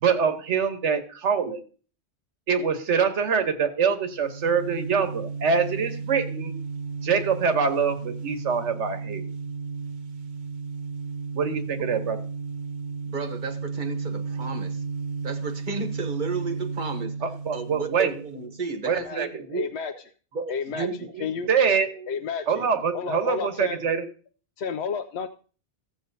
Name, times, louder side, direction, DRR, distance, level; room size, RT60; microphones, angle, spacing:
voice 1, 0.0-1.6 2.5-6.5 7.0-9.3 11.3-12.2 17.2-18.1 18.8-19.4 20.7-21.9 22.5-24.0, right 6 dB, 90° right, 8 dB, 1.4 m, -25 dB
sound 1, 4.1-18.6, right 5 dB, 70° right, 1.1 m, -34 dB
voice 2, 13.1-14.8 15.2-17.2 17.5-19.6 20.3-21.1 21.9-22.1 22.4-22.5, right 4 dB, 45° right, 7 dB, 1.1 m, -33 dB
voice 3, 19.5-19.9 20.5-21.5 22.1-22.7 22.9-23.8 24.6-25.3, left 6 dB, 70° left, 7 dB, 0.8 m, -31 dB
15.5 x 7.5 x 2.7 m, 0.39 s
omnidirectional pair, 1.2 m